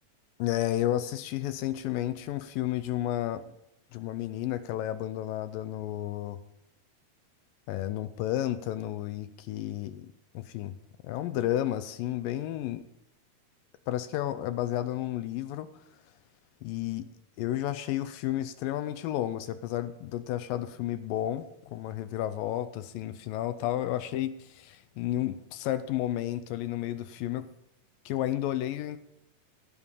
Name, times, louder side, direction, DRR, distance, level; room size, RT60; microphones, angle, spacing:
voice 1, 0.4-3.4 3.9-6.4 7.7-10.7 11.0-12.8 13.9-15.7 16.6-17.1 17.4-21.5 21.7-27.5 28.1-29.0, left 13 dB, 80° left, 12 dB, 2.1 m, -32 dB
15.5 x 9.9 x 5.4 m, 0.85 s
omnidirectional pair, 4.6 m